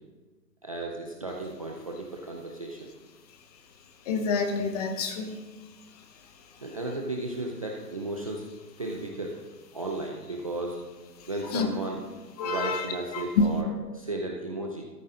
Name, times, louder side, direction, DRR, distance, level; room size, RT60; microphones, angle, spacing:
voice 1, 0.6-2.9 6.6-8.5 8.8-9.4 9.7-10.8 11.3-12.0 12.4-13.7 13.9-14.8, right 2 dB, 20° right, -1 dB, 0.5 m, -34 dB
voice 2, 4.1-5.4 11.5-11.7 12.4-12.8 13.1-13.5, left 4 dB, 25° left, 6 dB, 0.9 m, -27 dB
13.5 x 10.5 x 3.8 m, 1.3 s
hypercardioid pair, 150°, 50 cm